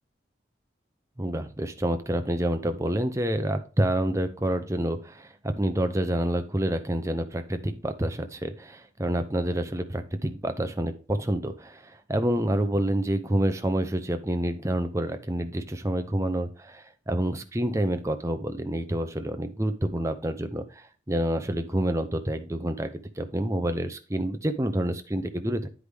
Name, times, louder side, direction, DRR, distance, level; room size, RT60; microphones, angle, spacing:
voice 1, 1.2-25.7, right 1 dB, 15° right, 8 dB, 0.7 m, -28 dB
9.9 x 4.9 x 3.4 m, 0.37 s
head